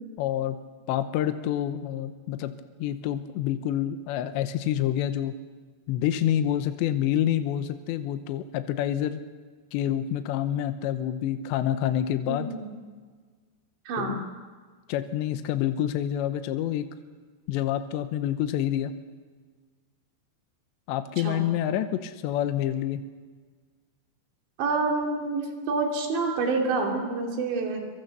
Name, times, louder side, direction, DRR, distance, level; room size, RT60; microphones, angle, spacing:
voice 1, 0.2-0.6 0.9-2.5 2.8-5.3 5.9-9.2 9.7-12.5 14.0-14.3 14.9-16.9 17.5-18.9 20.9-23.0, left 11 dB, 85° left, 9 dB, 3.2 m, -27 dB
voice 2, 12.3-12.7 13.9-14.2 21.2-21.4 24.6-27.8, right 3 dB, 85° right, 1 dB, 5.3 m, -27 dB
28.0 x 23.5 x 6.7 m, 1.5 s
omnidirectional pair, 5.0 m